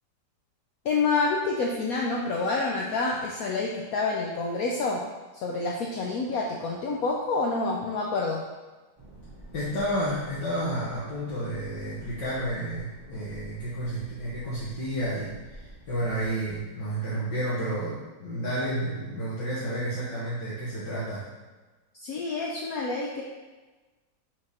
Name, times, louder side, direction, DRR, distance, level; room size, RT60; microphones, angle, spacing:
voice 1, 0.8-5.0 5.3-8.4 22.0-23.2, left 3 dB, 65° left, -1 dB, 1.0 m, -28 dB
sound 1, 9.0-16.6, right 1 dB, 15° right, 0.9 m, -48 dB
voice 2, 9.5-21.3, right 1 dB, 85° left, -9 dB, 2.0 m, -31 dB
5.9 x 4.3 x 4.9 m, 1.2 s
omnidirectional pair, 1.9 m